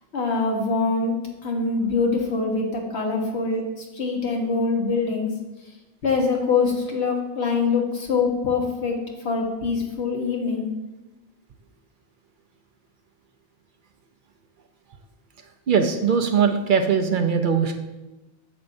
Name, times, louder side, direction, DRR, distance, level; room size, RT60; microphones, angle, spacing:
voice 1, 0.1-5.3 6.0-10.7, left 4 dB, 85° left, 1 dB, 1.4 m, -24 dB
voice 2, 15.7-17.7, right 6 dB, 60° right, 6 dB, 0.7 m, -20 dB
8.7 x 6.8 x 2.6 m, 1.1 s
omnidirectional pair, 1.1 m